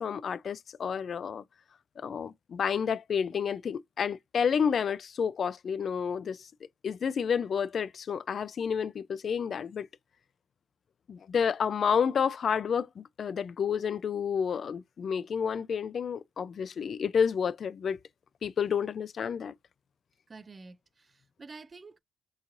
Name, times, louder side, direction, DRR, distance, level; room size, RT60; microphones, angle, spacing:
voice 1, 0.0-1.4 2.0-6.5 6.8-9.9 11.1-18.0 18.4-19.5, left 7 dB, 50° left, 0.3 m, -30 dB
voice 2, 20.3-22.0, right 4 dB, 30° right, 0.4 m, -49 dB
3.8 x 2.9 x 2.5 m
cardioid pair, 90°, 0 cm